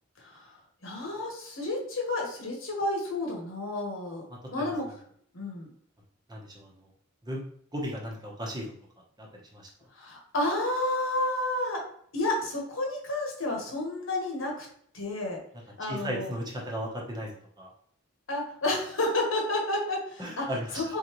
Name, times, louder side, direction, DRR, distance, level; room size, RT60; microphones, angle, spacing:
voice 1, 0.2-0.5 0.8-4.9 5.3-5.7 9.9-11.8 12.1-14.7 14.9-15.4 15.8-16.3 18.3-21.0, left 2 dB, 80° left, 0 dB, 1.3 m, -31 dB
voice 2, 6.3-6.7 7.2-7.4 7.7-8.7 9.2-9.3 9.5-9.7 15.9-17.3 17.6-17.7 20.2-20.9, equal, 20° right, -1 dB, 1.0 m, -35 dB
4.0 x 3.9 x 3.1 m, 0.63 s
head